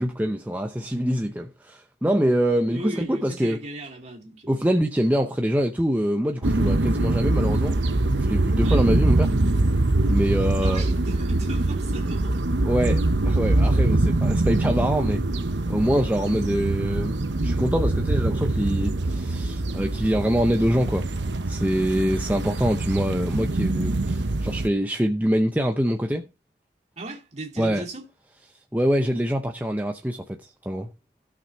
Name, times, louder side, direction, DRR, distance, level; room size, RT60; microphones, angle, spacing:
voice 1, 0.0-3.6 4.5-7.8 8.2-9.3 10.1-10.8 12.6-15.2 15.7-21.1 21.5-26.2 27.6-27.8 28.7-30.9, equal, 10° right, 0.6 m, -24 dB
voice 2, 2.7-4.7 8.6-8.8 10.6-12.4 27.0-28.0, right 1 dB, 35° right, 2.7 m, -37 dB
sound 1, 6.4-24.7, right 2 dB, 70° right, 0.9 m, -23 dB
16.5 x 6.0 x 3.1 m
head